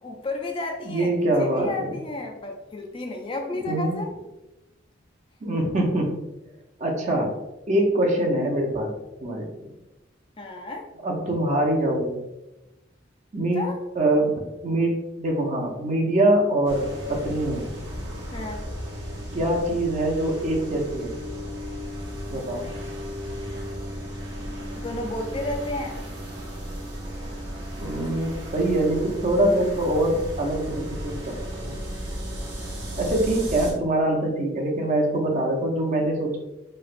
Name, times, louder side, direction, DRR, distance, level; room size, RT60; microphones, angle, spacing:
voice 1, 0.0-4.1 10.4-10.9 13.5-13.8 18.3-18.7 24.7-26.0, left 2 dB, 25° left, 2 dB, 0.3 m, -32 dB
voice 2, 0.8-1.9 3.7-4.0 5.4-6.2 6.8-7.3 7.7-8.9 9.2-9.7 11.0-12.2 13.3-13.6 14.0-14.3 14.6-17.6 19.3-21.2 22.3-22.7 27.8-31.4 31.6-31.7 33.0-36.4, right 1 dB, 40° right, 0 dB, 0.6 m, -24 dB
sound 1, 16.6-33.7, equal, 60° right, 0.9 m, -35 dB
3.1 x 2.8 x 2.4 m, 0.98 s
head